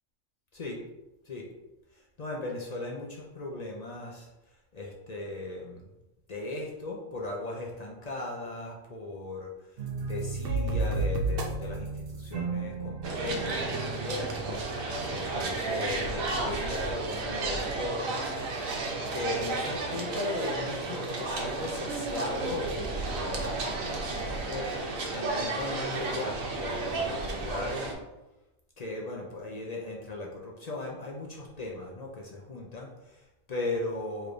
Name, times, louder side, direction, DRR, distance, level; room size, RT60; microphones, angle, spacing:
voice 1, 1.9-4.3 4.7-5.8 6.3-18.3 19.1-27.9 28.8-34.3, left 2 dB, 55° left, -1 dB, 0.4 m, -38 dB
sound 1, 9.8-16.6, right 3 dB, 55° right, 0.7 m, -34 dB
sound 2, 13.0-27.9, right 3 dB, 90° right, 1.2 m, -32 dB
4.8 x 3.1 x 2.5 m, 1.0 s
omnidirectional pair, 1.4 m